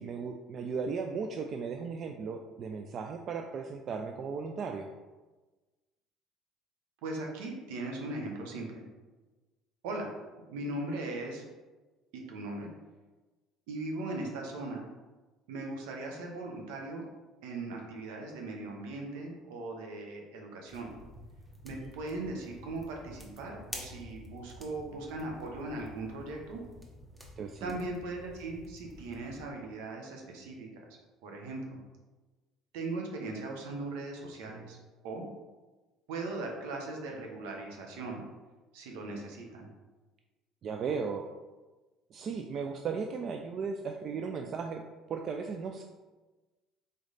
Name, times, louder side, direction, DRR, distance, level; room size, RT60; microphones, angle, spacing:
voice 1, 0.0-4.9 21.8-21.9 27.4-27.8 34.5-34.7 40.6-41.3 42.1-44.8 45.1-45.8, right 5 dB, 50° right, 3 dB, 0.3 m, -36 dB
voice 2, 7.0-8.9 9.8-10.1 10.5-11.5 12.1-12.7 13.7-14.9 15.5-17.0 17.4-20.9 21.6-26.6 27.6-30.7 31.2-31.8 32.7-34.8 35.0-35.3 36.1-38.2 38.7-39.7, right 2 dB, 80° right, 1 dB, 0.9 m, -39 dB
fire in the cabin woodstove, 20.7-29.5, equal, 10° right, 1.0 m, -49 dB
3.9 x 3.2 x 4.0 m, 1.2 s
hypercardioid pair, 75°, 0 cm